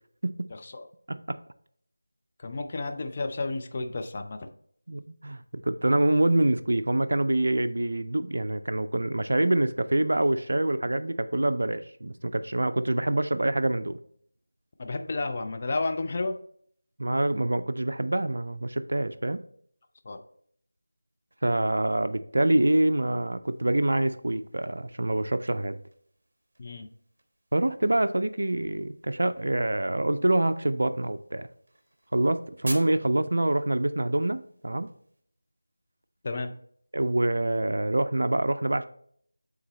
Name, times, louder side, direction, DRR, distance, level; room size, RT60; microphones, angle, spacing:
voice 1, 2.4-4.5 14.8-16.4 20.1-20.2 26.6-26.9 36.2-36.5, left 3 dB, 30° left, 5 dB, 0.5 m, -31 dB
voice 2, 4.9-5.4 5.7-14.0 17.0-19.4 21.4-25.8 27.5-31.5 32.1-34.9 36.9-38.8, right 1 dB, 60° right, 11 dB, 0.4 m, -26 dB
sound 1, 23.4-35.2, right 1 dB, 40° right, 1.1 m, -49 dB
8.6 x 3.8 x 3.1 m, 0.63 s
figure-of-eight pair, 165°, 0 cm